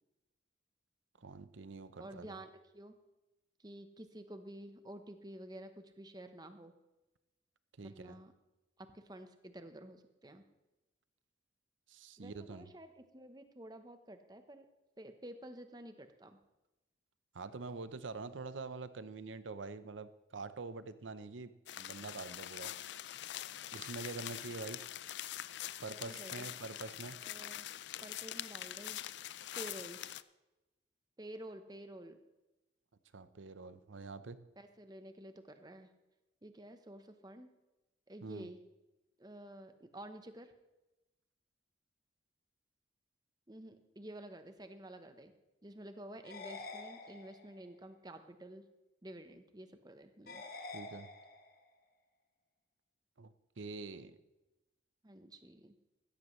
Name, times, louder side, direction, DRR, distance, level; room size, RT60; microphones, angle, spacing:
voice 1, 1.2-2.4 7.8-8.2 11.9-12.7 17.3-22.7 23.7-24.8 25.8-27.2 33.1-34.4 38.2-38.5 50.7-51.1 53.2-54.2, right 3 dB, 90° right, 13 dB, 0.7 m, -45 dB
voice 2, 2.0-3.0 3.6-6.7 7.8-8.3 8.8-10.4 12.2-14.7 15.0-16.4 23.6-23.7 26.0-26.5 27.2-27.7 28.0-29.0 29.6-30.0 31.2-32.2 34.6-35.9 36.4-37.5 38.1-38.6 39.2-40.5 43.5-45.3 45.6-48.6 49.0-50.4 55.0-55.7, right 1 dB, 20° right, 8 dB, 0.9 m, -50 dB
sound 1, 21.7-30.2, left 12 dB, 65° left, 0.4 m, -44 dB
sound 2, 46.2-47.7 50.3-51.7, left 3 dB, 50° left, 1.2 m, -48 dB
15.5 x 13.5 x 3.2 m, 1.0 s
head